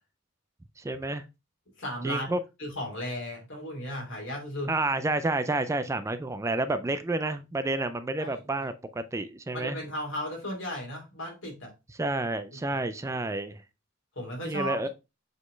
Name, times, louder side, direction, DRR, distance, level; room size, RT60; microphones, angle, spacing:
voice 1, 0.8-1.2 2.0-2.4 4.7-9.8 11.9-13.6 14.4-14.9, right 2 dB, 15° right, 0.4 m, -30 dB
voice 2, 1.8-2.3 2.6-4.7 8.2-8.7 9.5-11.7 12.7-13.2 14.1-14.8, equal, 65° left, 3.1 m, -36 dB
7.3 x 4.0 x 3.2 m
head